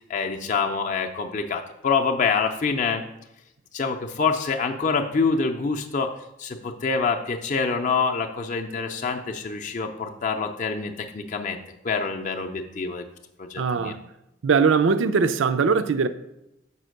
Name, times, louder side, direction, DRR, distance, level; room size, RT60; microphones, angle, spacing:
voice 1, 0.0-3.0 3.7-6.1 6.4-11.6 11.8-13.0 13.4-13.9, left 5 dB, 40° left, 0.5 m, -26 dB
voice 2, 13.6-14.0 14.4-16.1, right 5 dB, 85° right, 0.4 m, -21 dB
5.5 x 5.0 x 6.4 m
head